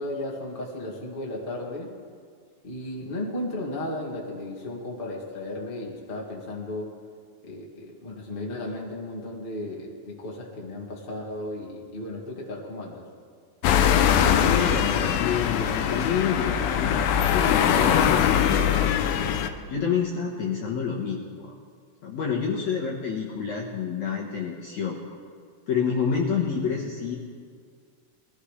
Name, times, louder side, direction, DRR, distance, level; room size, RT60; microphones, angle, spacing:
voice 1, 0.0-1.9 2.6-6.9 7.4-13.0 25.9-26.2, left 1 dB, 25° left, -3 dB, 1.2 m, -35 dB
sound 1, 13.6-19.5, left 9 dB, 80° left, 2.2 m, -22 dB
voice 2, 14.3-18.9 19.7-21.5 22.0-25.0 25.7-27.2, left 6 dB, 60° left, -3 dB, 2.1 m, -28 dB
22.0 x 15.0 x 3.3 m, 2.1 s
omnidirectional pair, 4.7 m